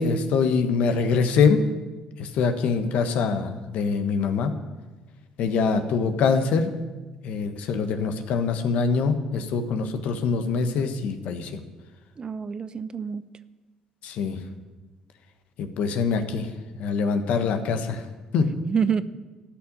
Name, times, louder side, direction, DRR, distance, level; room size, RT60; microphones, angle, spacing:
voice 1, 0.0-1.6 2.2-4.5 5.4-6.7 7.2-11.5 14.0-14.4 15.6-16.5 16.8-18.0 18.3-18.5, left 5 dB, 70° left, 8 dB, 1.3 m, -24 dB
voice 2, 12.2-13.2 18.4-19.0, right 6 dB, 35° right, 14 dB, 0.7 m, -27 dB
13.5 x 6.3 x 9.6 m, 1.2 s
supercardioid pair, 65°, 2 cm